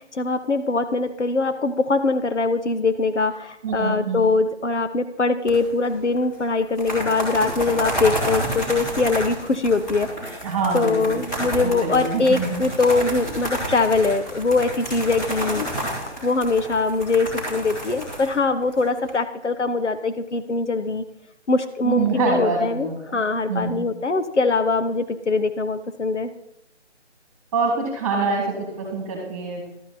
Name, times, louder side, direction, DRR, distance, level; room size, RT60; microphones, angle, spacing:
voice 1, 0.0-10.4 10.7-15.7 16.2-21.0 21.5-26.3, left 3 dB, 75° left, 9 dB, 1.1 m, -22 dB
voice 2, 3.6-4.2 10.4-12.6 21.8-23.2 23.5-23.9 27.5-29.7, right 4 dB, 15° right, 0 dB, 2.5 m, -25 dB
sound 1, 5.5-5.9 6.2-6.3 6.6-19.1, right 1 dB, 15° left, 2.8 m, -30 dB
12.5 x 8.7 x 4.3 m, 0.82 s
figure-of-eight pair, 165°, 36 cm